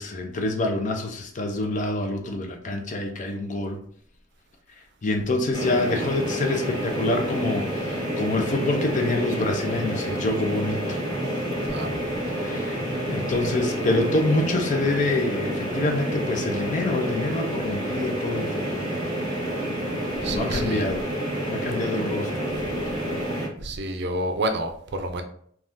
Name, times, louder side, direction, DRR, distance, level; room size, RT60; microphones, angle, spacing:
voice 1, 0.0-3.8 5.0-11.0 12.3-18.9 20.3-21.1 21.5-22.5, left 2 dB, 40° left, 4 dB, 0.5 m, -26 dB
sound 1, 5.5-23.5, equal, 25° right, 1.5 m, -29 dB
voice 2, 11.7-12.0 20.2-20.9 23.6-25.2, right 1 dB, 60° right, 5 dB, 0.5 m, -29 dB
3.4 x 2.3 x 2.5 m, 0.62 s
head